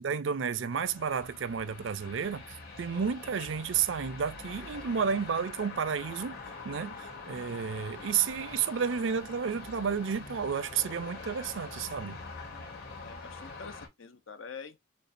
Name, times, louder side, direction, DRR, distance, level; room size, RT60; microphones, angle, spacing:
voice 1, 0.0-6.4 6.6-12.2, right 7 dB, 65° right, 0.4 m, -31 dB
sound 1, 0.7-13.9, left 3 dB, 50° left, 2.4 m, -44 dB
voice 2, 13.0-14.8, left 5 dB, 70° left, 0.7 m, -46 dB
6.7 x 2.3 x 2.5 m
head